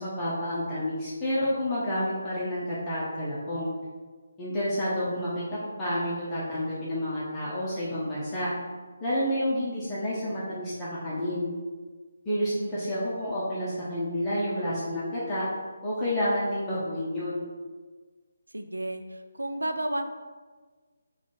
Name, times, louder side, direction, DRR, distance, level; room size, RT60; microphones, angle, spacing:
voice 1, 0.0-3.7 4.4-8.5 9.0-11.5 12.2-15.4 15.8-17.4, equal, 15° left, -10 dB, 0.8 m, -29 dB
voice 2, 18.5-20.0, right 1 dB, 85° right, 6 dB, 0.4 m, -32 dB
4.3 x 2.5 x 4.3 m, 1.4 s
figure-of-eight pair, 150°, 0 cm